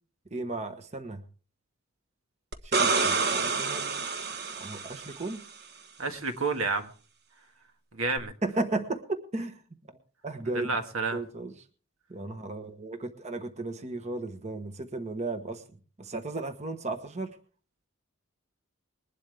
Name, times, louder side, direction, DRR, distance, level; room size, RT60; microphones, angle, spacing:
voice 1, 0.3-1.2 2.6-3.9 4.6-5.4 8.4-9.6 10.2-10.8 11.1-11.5 12.1-15.6 16.0-17.3, right 2 dB, 30° right, 8 dB, 1.2 m, -34 dB
sound 1, 2.5-5.3 8.2-8.3, right 4 dB, 50° right, 1.3 m, -28 dB
voice 2, 6.0-6.9 7.9-8.3 10.5-11.2, right 3 dB, 75° right, 6 dB, 1.9 m, -30 dB
21.0 x 11.5 x 3.5 m, 0.39 s
head